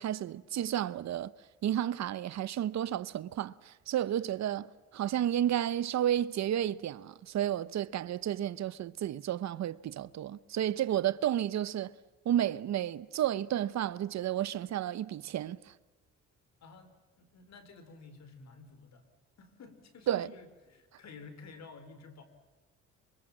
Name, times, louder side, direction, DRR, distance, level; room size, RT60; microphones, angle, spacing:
voice 1, 0.0-1.3 1.6-11.9 12.2-15.7 20.1-20.3, right 11 dB, 65° right, 0.9 m, -32 dB
voice 2, 16.6-19.0 19.4-22.2, left 4 dB, 60° left, 4.5 m, -52 dB
25.0 x 24.5 x 7.4 m
cardioid pair, 90°, 30 cm